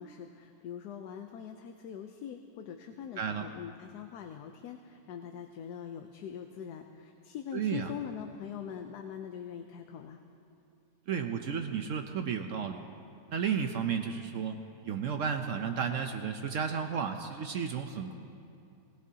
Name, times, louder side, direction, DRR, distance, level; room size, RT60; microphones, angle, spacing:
voice 1, 0.0-10.2, left 8 dB, 75° left, 5 dB, 1.2 m, -43 dB
voice 2, 7.5-7.9 11.1-12.8 13.3-18.1, right 7 dB, 65° right, 6 dB, 0.8 m, -33 dB
19.0 x 18.0 x 2.8 m, 2.6 s
omnidirectional pair, 1.7 m